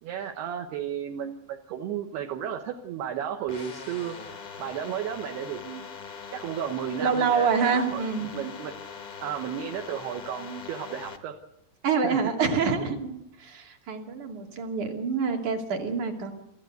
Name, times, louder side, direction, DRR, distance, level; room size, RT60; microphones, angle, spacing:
voice 1, 0.0-4.2 4.6-5.8 6.3-8.0 8.3-8.7 9.2-11.3 12.0-12.2, right 9 dB, 70° right, 4 dB, 3.1 m, -33 dB
sound 1, 3.5-11.2, left 6 dB, 90° left, 0.8 m, -42 dB
voice 2, 7.0-8.3 11.8-13.1 13.4-16.3, right 5 dB, 45° right, 3 dB, 3.7 m, -26 dB
28.5 x 14.5 x 8.1 m, 0.81 s
omnidirectional pair, 5.1 m